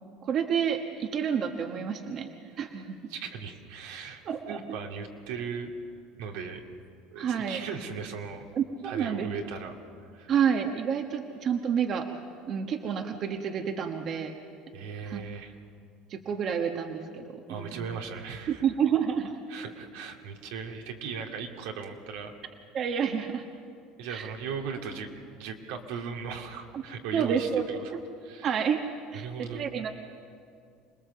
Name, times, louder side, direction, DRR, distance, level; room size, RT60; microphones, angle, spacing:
voice 1, 0.2-2.3 2.6-3.0 4.2-4.6 7.2-7.6 8.5-9.3 10.3-12.1 12.5-14.3 15.0-15.2 16.1-17.8 18.5-19.4 22.7-23.4 24.1-24.3 26.7-26.8 27.1-27.6 27.9-28.0 28.4-28.8 29.1-29.9, right 7 dB, 45° right, 5 dB, 1.2 m, -29 dB
voice 2, 3.1-4.2 4.5-5.7 6.2-6.6 7.1-8.4 8.8-9.8 10.1-10.3 14.7-15.6 17.5-18.6 19.5-22.3 24.0-25.1 25.4-27.9 28.2-28.6 29.2-29.7, right 6 dB, 80° right, 2 dB, 2.2 m, -38 dB
26.5 x 19.5 x 7.0 m, 2.4 s
supercardioid pair, 120°, 0 cm